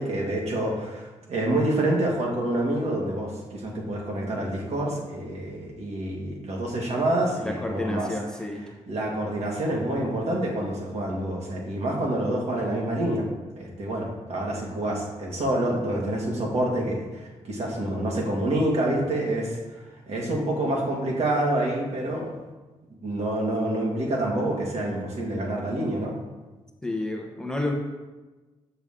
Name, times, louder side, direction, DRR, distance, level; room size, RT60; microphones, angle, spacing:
voice 1, 0.0-8.1 8.9-13.3 13.6-22.3 23.0-26.1, right 1 dB, 60° right, -2 dB, 1.9 m, -27 dB
voice 2, 7.4-8.6 26.8-27.7, left 2 dB, 5° left, 0 dB, 0.9 m, -30 dB
6.7 x 6.3 x 3.7 m, 1.2 s
cardioid pair, 100°, 12 cm